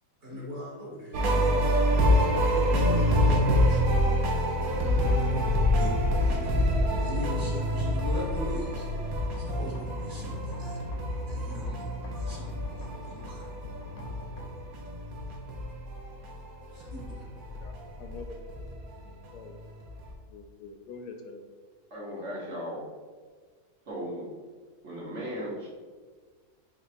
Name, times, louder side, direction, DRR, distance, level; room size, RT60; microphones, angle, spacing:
voice 1, 0.2-1.7 2.3-4.0 5.3-10.8 11.2-11.8 12.2-13.5 16.7-17.3, equal, 35° right, 1.1 m, -40 dB
sound 1, 1.1-16.5 16.7-19.5 19.8-20.1, equal, 65° right, 1.1 m, -27 dB
sound 2, 4.5-18.4, left 3 dB, 60° left, 0.9 m, -46 dB
voice 2, 19.0-19.6 20.3-21.4, left 4 dB, 85° left, 1.1 m, -45 dB
voice 3, 21.9-22.8 23.8-24.3 24.8-25.7, equal, 50° right, 1.5 m, -36 dB
4.6 x 2.5 x 4.2 m
omnidirectional pair, 1.7 m